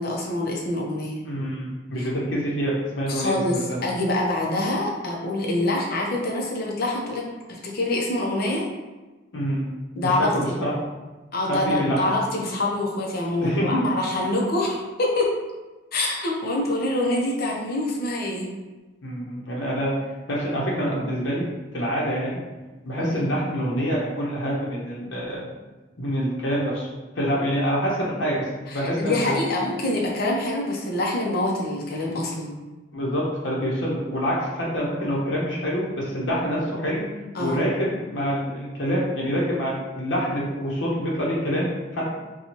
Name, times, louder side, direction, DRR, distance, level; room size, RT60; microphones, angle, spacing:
voice 1, 0.0-1.2 2.0-2.1 3.1-8.7 10.0-10.6 11.3-15.3 15.9-18.5 23.0-23.3 28.7-32.5 37.3-37.6, left 1 dB, 55° left, -1 dB, 0.7 m, -25 dB
voice 2, 1.2-3.4 3.7-3.8 9.3-9.7 10.0-10.7 11.5-12.0 13.4-13.8 19.0-20.0 20.3-21.5 21.7-22.4 22.8-25.5 26.0-26.9 27.2-29.3 32.9-37.0 37.4-42.1, equal, 90° left, -5 dB, 0.8 m, -26 dB
4.3 x 2.3 x 2.9 m, 1.2 s
head